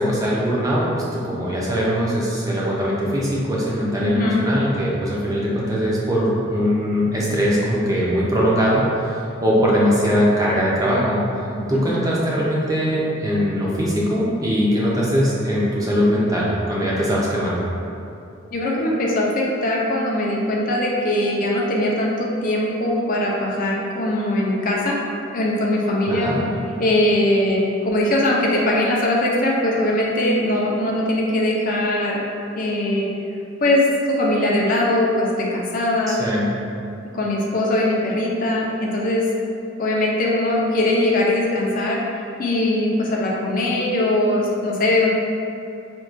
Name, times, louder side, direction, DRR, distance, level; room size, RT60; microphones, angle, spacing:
voice 1, 0.0-11.2 11.7-17.7 26.1-26.4 36.1-36.5, equal, 20° right, -6 dB, 0.5 m, -21 dB
voice 2, 4.0-4.4 11.5-11.8 18.5-25.0 25.3-26.3 26.8-32.2 32.5-33.1 33.6-36.2 37.1-39.2 39.8-42.0 42.4-45.1, left 1 dB, 45° left, -3 dB, 0.4 m, -21 dB
4.4 x 2.2 x 2.5 m, 2.7 s
head